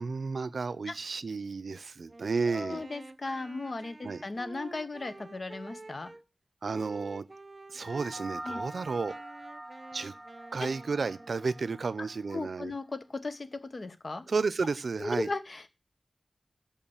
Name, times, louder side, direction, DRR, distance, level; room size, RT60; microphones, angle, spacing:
voice 1, 0.0-2.8 4.0-4.2 6.6-7.3 7.7-9.1 9.9-10.1 10.5-12.7 14.3-15.3, right 4 dB, 85° right, 0.5 m, -32 dB
Wind instrument woodwind instrument, 2.0-6.2 6.7-8.1 8.5-11.8, right 2 dB, 40° right, 0.7 m, -49 dB
voice 2, 2.5-6.1 8.4-8.6 12.0-14.2 15.0-15.7, left 3 dB, 55° left, 0.9 m, -37 dB
sound 1, 7.8-12.4, right 1 dB, 5° right, 1.5 m, -44 dB
6.7 x 5.6 x 7.0 m
wide cardioid pair, 90°, 0 cm